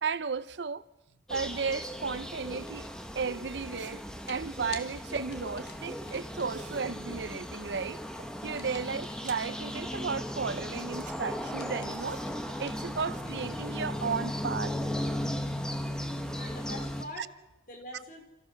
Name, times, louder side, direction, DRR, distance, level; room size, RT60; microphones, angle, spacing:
voice 1, 0.0-0.9 1.3-2.9 3.1-8.0 8.4-12.2 12.6-14.7, right 5 dB, 75° right, 0.7 m, -34 dB
sound 1, 1.3-17.0, equal, 5° left, 1.1 m, -37 dB
sound 2, 2.3-3.0 4.3-6.9 8.6-10.3 11.3-13.8, left 6 dB, 65° left, 1.8 m, -52 dB
sound 3, 3.8-4.2 4.8-5.3 5.9-8.4 8.8-9.7 10.1-11.2 11.5-13.2, right 4 dB, 45° right, 1.3 m, -50 dB
voice 2, 15.8-17.3 17.7-18.2, left 1 dB, 50° left, 4.1 m, -45 dB
28.5 x 14.5 x 6.5 m
head